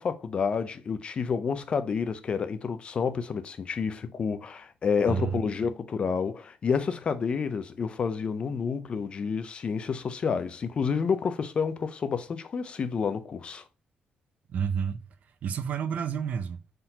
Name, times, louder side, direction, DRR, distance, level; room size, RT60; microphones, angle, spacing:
voice 1, 0.0-13.6, left 6 dB, 35° left, 0.4 m, -29 dB
voice 2, 5.1-5.5 14.5-15.0 15.4-16.6, right 7 dB, 55° right, 0.5 m, -30 dB
4.5 x 3.8 x 2.7 m
wide cardioid pair, 175°, 3 cm